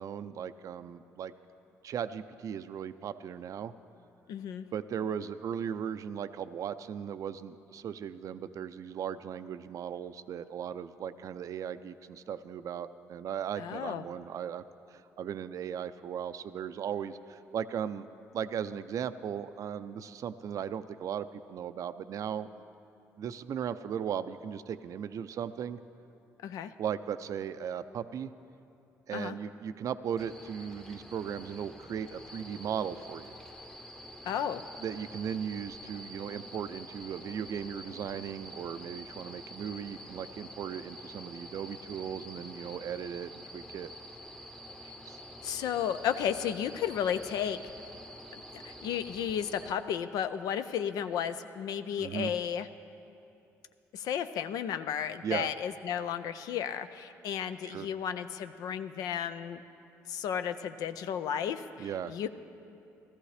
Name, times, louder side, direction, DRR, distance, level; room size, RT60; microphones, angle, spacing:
voice 1, 0.0-1.3 1.8-3.7 4.7-14.6 14.9-18.1 18.3-22.5 23.2-25.8 26.8-28.3 29.1-33.4 34.8-43.9 45.1-45.2 52.0-52.3 55.2-55.5 57.6-57.9 61.8-62.1, right 8 dB, 60° right, 13 dB, 0.4 m, -37 dB
voice 2, 4.3-4.7 13.6-14.0 26.4-26.7 29.1-29.4 34.2-34.6 44.8-44.9 45.4-47.6 48.5-52.7 53.9-59.6 60.1-62.3, left 9 dB, 70° left, 10 dB, 0.4 m, -33 dB
sound 1, 30.2-49.7, equal, 10° left, 0.9 m, -47 dB
16.5 x 13.5 x 3.3 m, 2.7 s
supercardioid pair, 60°, 7 cm